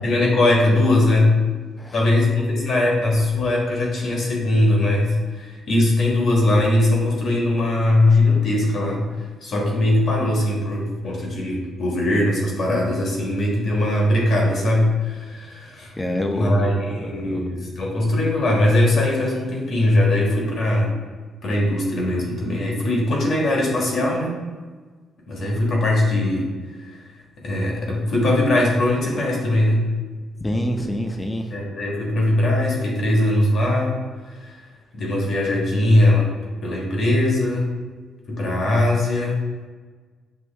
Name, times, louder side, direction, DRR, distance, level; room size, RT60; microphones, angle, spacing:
voice 1, 0.0-1.4 1.9-9.1 9.4-15.9 16.3-20.9 21.4-24.4 25.3-26.5 26.8-27.0 27.4-29.9 31.5-34.0 34.4-34.6 34.9-36.3 36.6-37.7 38.3-39.4, left 1 dB, 60° left, -2 dB, 1.4 m, -20 dB
voice 2, 16.0-16.7 17.2-17.4 30.4-31.4, left 1 dB, 15° left, 3 dB, 0.6 m, -26 dB
6.3 x 2.5 x 3.3 m, 1.4 s
cardioid pair, 90°, 0 cm